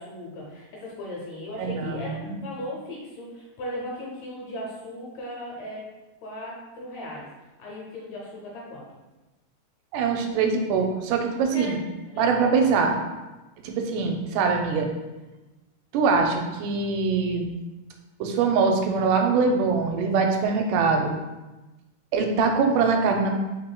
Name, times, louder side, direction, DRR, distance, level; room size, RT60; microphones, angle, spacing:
voice 1, 0.0-5.8 6.2-7.3 7.6-8.8 11.5-11.8 12.1-12.9, left 1 dB, 75° left, -3 dB, 1.7 m, -37 dB
voice 2, 1.6-2.4 9.9-11.8 12.2-13.0 13.6-14.9 15.9-17.5 18.2-21.1 22.1-23.4, right 5 dB, 85° right, 3 dB, 2.1 m, -23 dB
5.1 x 4.2 x 2.2 m, 1.1 s
omnidirectional pair, 3.7 m